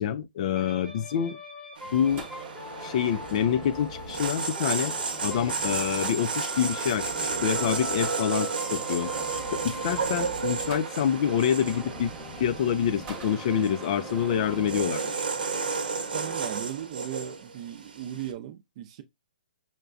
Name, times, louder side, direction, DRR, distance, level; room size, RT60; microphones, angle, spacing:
voice 1, 0.0-1.4 1.9-2.3 2.8-4.9 5.2-9.1 9.5-12.1 12.4-15.3, left 9 dB, 45° left, 0.4 m, -27 dB
sound 1, 0.5-6.0 6.3-16.6, left 1 dB, 5° left, 0.7 m, -44 dB
sound 2, 1.8-18.3, right 5 dB, 75° right, 0.9 m, -33 dB
sound 3, 2.1-14.8, right 3 dB, 20° right, 1.0 m, -42 dB
voice 2, 16.1-19.0, right 11 dB, 40° right, 0.5 m, -37 dB
5.6 x 2.2 x 2.5 m
hypercardioid pair, 145°, 5 cm